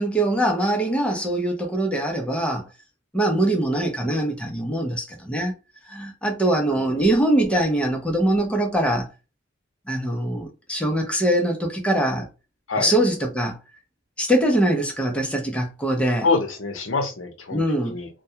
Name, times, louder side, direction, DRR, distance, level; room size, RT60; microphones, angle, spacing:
voice 1, 0.0-2.7 3.1-5.5 5.9-9.1 9.9-12.3 12.8-13.6 14.2-16.3 17.5-18.0, right 1 dB, 5° left, 0.6 m, -22 dB
voice 2, 16.2-18.1, left 4 dB, 75° left, 0.7 m, -26 dB
2.2 x 2.2 x 2.8 m
head